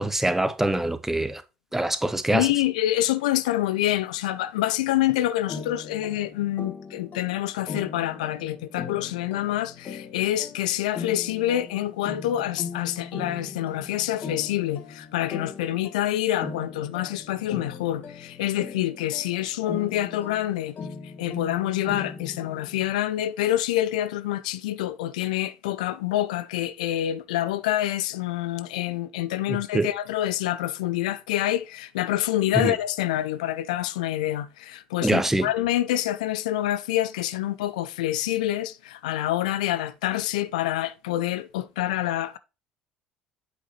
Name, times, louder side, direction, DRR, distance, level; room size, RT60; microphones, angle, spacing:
voice 1, 0.0-1.4 1.7-2.5 29.5-29.9 32.5-32.7 35.0-35.5, right 1 dB, 10° right, 0.8 m, -24 dB
voice 2, 2.3-20.8 21.2-42.4, left 13 dB, 70° left, 0.4 m, -27 dB
sound 1, 5.5-22.9, left 5 dB, 40° left, 1.3 m, -39 dB
8.1 x 5.0 x 2.8 m
figure-of-eight pair, 60°, 4 cm